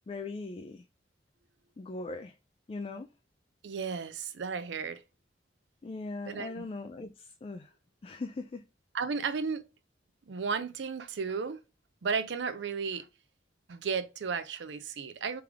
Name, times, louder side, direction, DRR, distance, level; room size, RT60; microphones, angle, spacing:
voice 1, 0.1-0.8 1.8-2.3 2.7-3.1 5.8-7.7 8.0-8.6, left 3 dB, 30° left, 0.3 m, -39 dB
voice 2, 3.6-5.0 6.3-6.6 8.9-9.7 10.3-11.6 12.0-13.1 13.7-15.4, right 5 dB, 80° right, 0.5 m, -34 dB
3.4 x 3.4 x 3.4 m
head